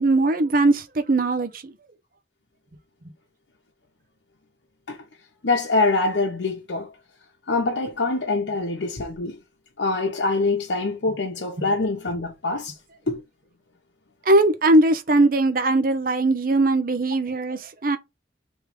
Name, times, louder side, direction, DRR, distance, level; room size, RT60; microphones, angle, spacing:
voice 1, 0.0-1.7 11.6-11.7 14.3-18.0, right 2 dB, 50° right, 0.7 m, -20 dB
voice 2, 5.4-6.9 7.5-9.4 9.8-12.7 13.1-13.2, left 3 dB, 90° left, 0.9 m, -24 dB
3.5 x 3.2 x 4.8 m
head